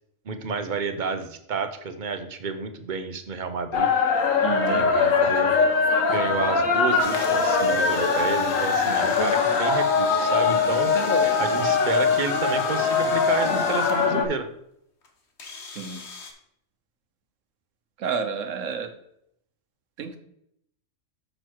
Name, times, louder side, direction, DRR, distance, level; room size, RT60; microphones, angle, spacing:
voice 1, 0.3-3.9 4.7-5.5 6.1-10.9 11.4-14.5, right 5 dB, 45° right, 9 dB, 0.8 m, -30 dB
sound 1, 3.7-14.2, left 5 dB, 85° left, 1.3 m, -22 dB
voice 2, 4.4-4.8 15.8-16.0 18.0-18.9 20.0-20.2, right 6 dB, 80° right, 7 dB, 1.2 m, -30 dB
sound 2, 7.0-14.1 15.0-15.1 15.4-16.3, left 3 dB, 60° left, 1.4 m, -41 dB
6.5 x 6.1 x 4.5 m, 0.74 s
omnidirectional pair, 1.3 m